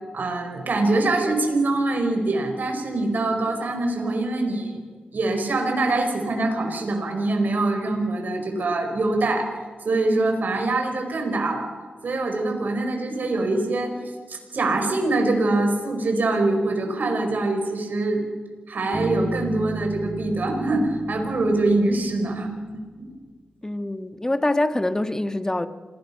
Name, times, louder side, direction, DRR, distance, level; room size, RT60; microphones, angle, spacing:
voice 1, 0.1-4.8 5.1-9.5 9.8-11.7 12.0-13.9 14.3-18.2 18.7-23.1, right 2 dB, 70° right, 4.9 m, -24 dB
Bass guitar, 18.9-22.7, right 2 dB, 40° right, 4.7 m, -34 dB
voice 2, 23.6-25.7, left 1 dB, 20° left, 1.4 m, -24 dB
26.5 x 18.5 x 5.7 m
cardioid pair, 55°, 3 cm